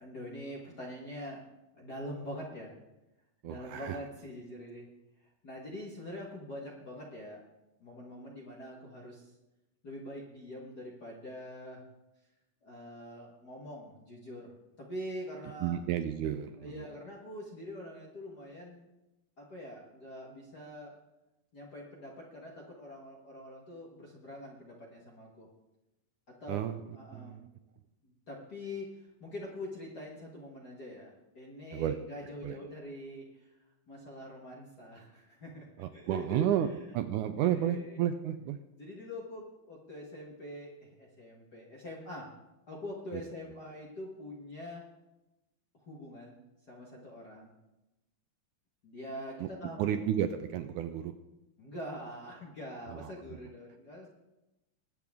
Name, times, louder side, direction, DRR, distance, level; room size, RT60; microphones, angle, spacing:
voice 1, 0.0-1.4 1.7-2.7 3.4-4.9 5.2-7.4 7.8-9.3 9.8-11.8 12.6-15.7 16.6-18.9 19.4-20.9 21.5-25.5 26.4-27.4 28.0-33.6 33.9-36.7 37.4-38.0 38.8-42.3 42.7-44.8 45.8-46.4 46.7-47.5 48.8-49.9 51.6-54.1, left 1 dB, 45° left, -2 dB, 1.3 m, -44 dB
voice 2, 3.4-4.0 15.6-16.9 26.5-26.8 27.1-27.5 31.7-32.0 32.4-32.6 35.8-36.7 36.9-38.6 43.1-43.2 49.4-49.5 49.8-51.1 52.9-53.1, right 11 dB, 80° right, 9 dB, 1.8 m, -32 dB
21.0 x 8.5 x 3.6 m, 0.97 s
omnidirectional pair, 3.9 m